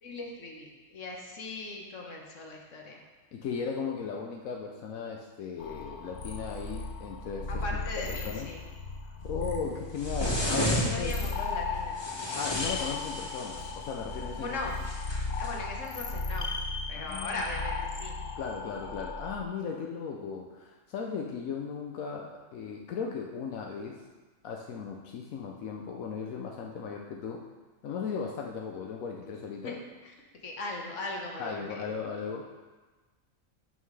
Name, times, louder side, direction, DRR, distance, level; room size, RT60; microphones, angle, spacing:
voice 1, 0.0-3.0 7.6-8.6 10.5-12.1 14.4-14.8 15.4-16.5 16.9-18.2 29.6-29.8 30.0-30.1 30.4-31.9, left 2 dB, 65° left, 0 dB, 1.6 m, -38 dB
voice 2, 3.3-7.6 8.1-8.5 9.0-11.2 12.3-14.5 16.9-17.4 18.4-24.0 24.4-27.4 27.8-29.8 31.4-32.4, left 6 dB, 85° left, 0 dB, 1.1 m, -37 dB
sound 1, 5.6-19.4, left 3 dB, 50° left, 0.8 m, -36 dB
sound 2, 10.0-11.3 12.0-13.8 14.8-15.5, equal, 20° left, 1.6 m, -32 dB
12.5 x 5.6 x 3.2 m, 1.3 s
omnidirectional pair, 1.4 m